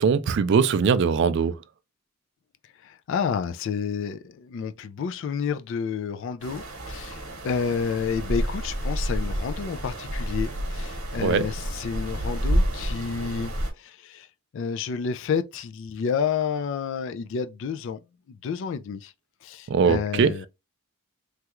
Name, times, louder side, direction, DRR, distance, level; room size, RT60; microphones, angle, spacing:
voice 1, 0.0-1.6 11.2-11.5 19.7-20.3, right 6 dB, 55° right, 0.3 m, -21 dB
voice 2, 2.8-13.5 13.8-14.3 14.5-18.0 18.3-19.1 19.4-20.5, left 6 dB, 55° left, 0.3 m, -30 dB
sound 1, 6.4-13.7, equal, 70° right, 1.0 m, -29 dB
3.2 x 2.3 x 2.9 m
head